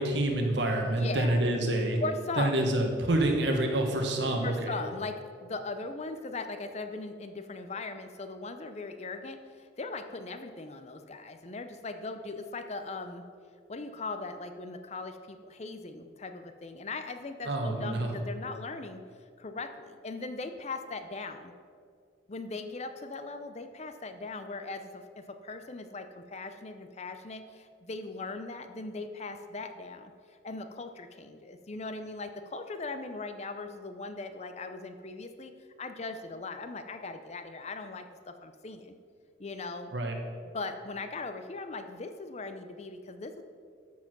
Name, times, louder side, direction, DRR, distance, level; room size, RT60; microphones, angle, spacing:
voice 1, 0.0-2.0 2.4-4.8 17.4-18.1 39.9-40.1, right 1 dB, 65° right, 3 dB, 1.4 m, -27 dB
voice 2, 1.0-1.4 2.0-2.5 4.4-13.2 13.7-19.0 19.4-21.5 22.3-30.1 30.4-35.5 35.8-38.9 39.4-39.9 40.5-43.4, left 3 dB, 35° left, 8 dB, 0.5 m, -39 dB
13.0 x 4.8 x 6.0 m, 2.2 s
head